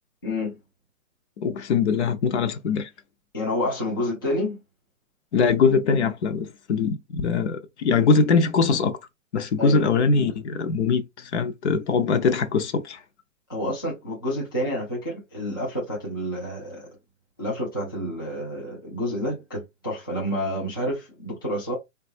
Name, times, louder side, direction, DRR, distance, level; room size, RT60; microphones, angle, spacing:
voice 1, 0.2-0.6 3.3-4.6 9.6-9.9 13.5-17.0 17.4-21.7, left 1 dB, 20° left, 0.4 m, -29 dB
voice 2, 1.4-2.9 5.3-9.0 9.3-13.0, left 5 dB, 60° left, 0.6 m, -22 dB
3.5 x 2.3 x 2.6 m
hypercardioid pair, 170°, 39 cm